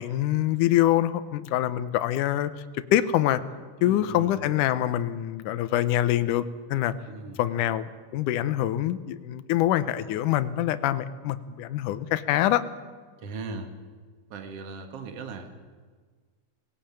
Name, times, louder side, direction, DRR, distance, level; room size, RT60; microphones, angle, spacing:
voice 1, 0.0-2.5 2.9-3.4 3.8-6.4 6.7-6.9 7.4-7.9 8.1-12.6, left 13 dB, 80° left, 12 dB, 2.3 m, -25 dB
voice 2, 3.8-4.4 7.1-7.4 13.2-13.7 14.3-15.6, right 4 dB, 50° right, 6 dB, 2.6 m, -38 dB
19.5 x 17.5 x 8.8 m, 1.5 s
omnidirectional pair, 3.7 m